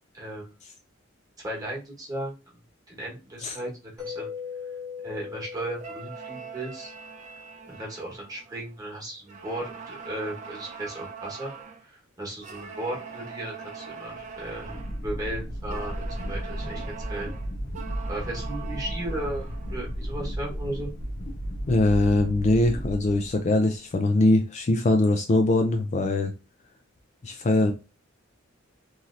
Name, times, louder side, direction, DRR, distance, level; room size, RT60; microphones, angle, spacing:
voice 1, 0.1-0.5 1.4-2.4 2.9-4.3 5.0-6.9 7.7-11.5 11.8-17.3 18.1-20.9, right 1 dB, 20° right, -4 dB, 1.2 m, -36 dB
Mallet percussion, 4.0-7.7, left 7 dB, 5° left, 0.9 m, -40 dB
sound 1, 5.8-8.9 9.3-11.9 12.4-15.0 15.7-19.9, right 6 dB, 35° right, 0.5 m, -42 dB
sound 2, 14.2-23.7, equal, 55° left, 0.8 m, -34 dB
voice 2, 21.7-26.3 27.2-27.7, left 2 dB, 35° left, 5 dB, 0.4 m, -22 dB
3.1 x 2.7 x 2.5 m, 0.29 s
head